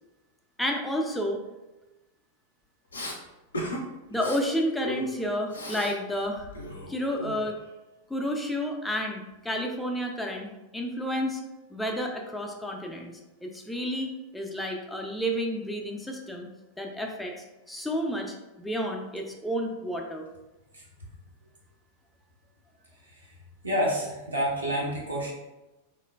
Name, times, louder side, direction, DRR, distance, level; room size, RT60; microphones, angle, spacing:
voice 1, 0.6-1.4 4.1-6.5 6.9-7.6 8.1-10.5 10.7-11.4 11.7-13.1 13.4-16.5 16.8-17.3 17.7-20.3 24.7-24.8, equal, 5° left, 1 dB, 0.3 m, -30 dB
Respiratory sounds, 2.9-3.2 3.5-3.8 4.1-4.4 4.8-6.0 6.2-7.7, equal, 75° left, 0.4 m, -37 dB
voice 2, 23.6-25.3, equal, 80° right, -4 dB, 0.5 m, -28 dB
3.1 x 2.1 x 2.2 m, 1.0 s
figure-of-eight pair, 90°, 0 cm